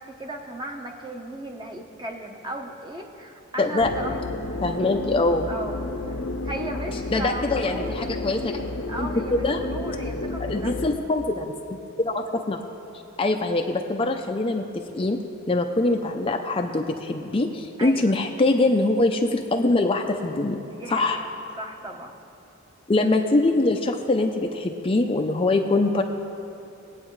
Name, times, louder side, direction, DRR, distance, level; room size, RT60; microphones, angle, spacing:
voice 1, 0.0-4.2 5.5-5.8 6.1-8.2 8.9-10.7 17.8-18.2 20.7-21.3 21.6-22.2, right 1 dB, 20° right, 1 dB, 1.0 m, -36 dB
voice 2, 3.6-3.9 4.6-5.5 7.1-8.4 9.0-9.1 9.4-9.6 10.5-12.6 13.2-15.2 15.5-20.6 20.9-21.2 22.9-26.0, left 2 dB, 25° left, 3 dB, 0.5 m, -23 dB
sound 1, 3.8-11.0, left 2 dB, 70° left, 0.8 m, -31 dB
22.0 x 8.7 x 3.2 m, 2.9 s
head